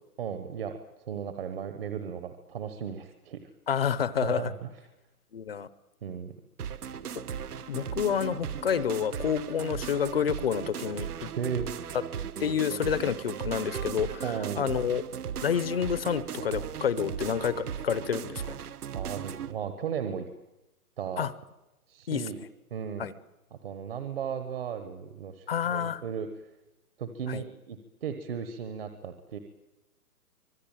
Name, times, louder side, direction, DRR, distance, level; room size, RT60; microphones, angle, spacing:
voice 1, 0.2-3.5 4.2-4.7 6.0-6.3 6.7-6.8 11.4-11.7 14.2-14.7 18.9-20.3 21.0-21.2 21.9-22.4 22.7-23.1 23.6-26.3 27.0-29.4, right 7 dB, 40° right, 8 dB, 1.3 m, -35 dB
voice 2, 3.7-4.5 5.3-5.7 7.7-11.3 12.4-14.2 14.6-15.0 15.4-18.6 21.2-21.3 22.1-22.2 23.0-23.1 25.5-26.0 27.3-27.4, left 8 dB, 40° left, 16 dB, 0.7 m, -29 dB
sound 1, 6.6-19.5, right 8 dB, 75° right, 1.4 m, -37 dB
25.0 x 19.5 x 8.9 m, 1.0 s
hypercardioid pair, 170°, 45 cm